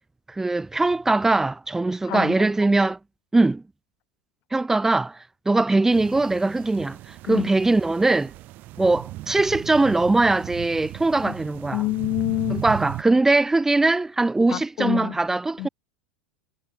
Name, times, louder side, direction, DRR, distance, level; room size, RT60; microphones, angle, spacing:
voice 1, 0.3-3.0 3.3-3.6 4.5-8.3 8.8-11.8 12.5-15.7, right 2 dB, 10° right, 4.4 m, -21 dB
voice 2, 2.1-2.5 7.3-7.5 11.2-11.3 11.7-12.6 14.5-15.2 15.6-15.7, left 20 dB, 45° left, 3.6 m, -27 dB
sound 1, 5.9-13.0, right 17 dB, 45° right, 6.4 m, -37 dB
figure-of-eight pair, 85°, 4 cm